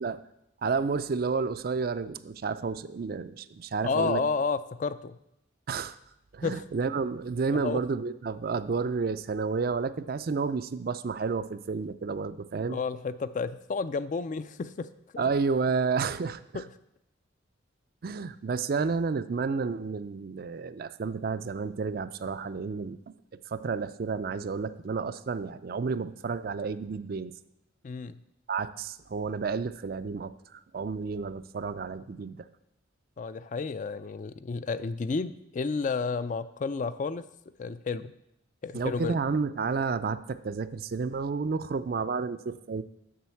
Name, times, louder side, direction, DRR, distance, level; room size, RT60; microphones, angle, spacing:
voice 1, 0.6-4.2 5.7-5.9 6.3-12.8 15.2-16.6 18.0-23.0 23.5-27.3 28.5-32.5 38.7-42.8, right 4 dB, 50° right, 13 dB, 0.4 m, -31 dB
voice 2, 3.8-5.2 6.4-6.6 7.5-7.8 12.7-14.9 15.1-15.2 16.5-16.6 27.8-28.2 33.2-37.2 37.6-38.1 38.6-39.2, left 4 dB, 40° left, 14 dB, 0.3 m, -31 dB
7.5 x 6.3 x 7.0 m, 0.80 s
head